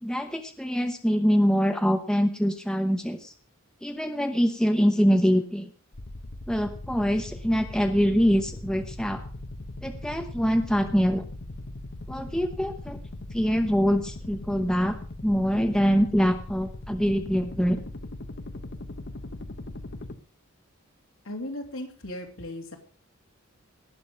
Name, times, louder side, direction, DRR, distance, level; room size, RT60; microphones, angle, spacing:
voice 1, 0.0-3.3 3.8-5.7 6.5-9.2 9.8-11.2 12.1-13.0 13.3-15.0 15.2-17.8, equal, 5° left, 6 dB, 1.0 m, -24 dB
sound 1, 5.9-20.2, left 1 dB, 55° left, 1.1 m, -39 dB
voice 2, 21.2-22.8, left 1 dB, 75° left, 2 dB, 3.0 m, -36 dB
18.5 x 7.0 x 5.4 m, 0.40 s
head